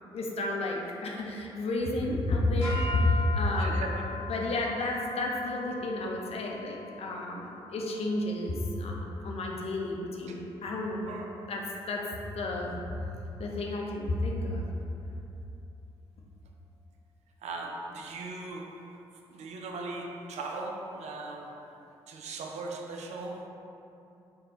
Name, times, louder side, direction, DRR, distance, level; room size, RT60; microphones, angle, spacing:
voice 1, 0.1-3.8 4.1-11.1 11.5-12.0 12.3-12.8 13.4-14.6, left 2 dB, 50° left, -1 dB, 0.6 m, -31 dB
sound 1, 2.6-9.0, left 2 dB, 90° left, 1.1 m, -40 dB
voice 2, 3.6-4.1 10.2-10.3 11.0-11.4 17.4-19.0 19.3-23.5, right 3 dB, 60° right, 1 dB, 0.4 m, -39 dB
3.6 x 2.3 x 3.8 m, 2.8 s
hypercardioid pair, 40°, 13 cm